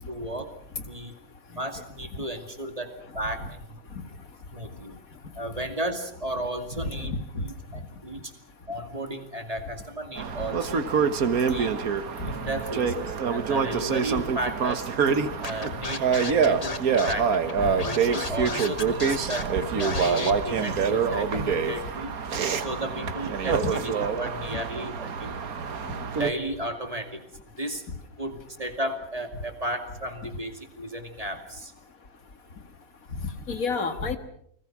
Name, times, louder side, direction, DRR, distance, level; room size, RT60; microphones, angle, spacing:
voice 1, 0.1-0.5 0.9-1.1 1.5-3.8 4.5-5.0 5.3-7.2 7.4-8.3 8.7-10.9 11.5-14.9 15.4-19.5 19.8-22.1 22.6-25.4 26.2-27.2 27.6-27.9 28.2-31.7, right 1 dB, 25° right, 6 dB, 2.6 m, -34 dB
voice 2, 7.0-7.4 12.2-12.3 17.6-17.7 21.3-21.5 23.5-23.7 33.5-34.2, left 3 dB, 75° left, 9 dB, 2.3 m, -29 dB
sound 1, 10.2-26.3, right 6 dB, 90° right, 1.8 m, -26 dB
Scratching (performance technique), 15.4-20.3, left 3 dB, 30° left, 1.3 m, -34 dB
29.5 x 21.0 x 6.1 m, 0.68 s
omnidirectional pair, 1.5 m